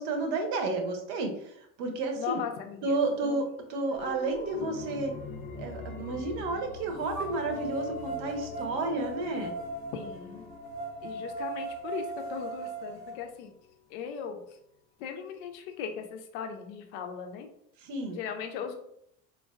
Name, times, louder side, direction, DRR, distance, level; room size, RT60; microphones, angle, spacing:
voice 1, 0.0-2.4 2.8-5.1 5.6-9.6 17.8-18.2, right 3 dB, 50° right, 4 dB, 0.8 m, -31 dB
voice 2, 2.2-2.9 3.2-3.4 9.9-10.5 11.0-13.5 13.9-14.4 15.0-17.5 18.1-18.8, left 7 dB, 55° left, 5 dB, 0.6 m, -38 dB
sound 1, 3.3-3.4 4.0-5.9 7.1-13.2, right 2 dB, 90° right, 0.9 m, -39 dB
sound 2, 4.0-13.3 13.7-13.8, left 4 dB, 20° left, 0.3 m, -45 dB
4.4 x 2.2 x 2.3 m, 0.75 s
figure-of-eight pair, 60°, 45 cm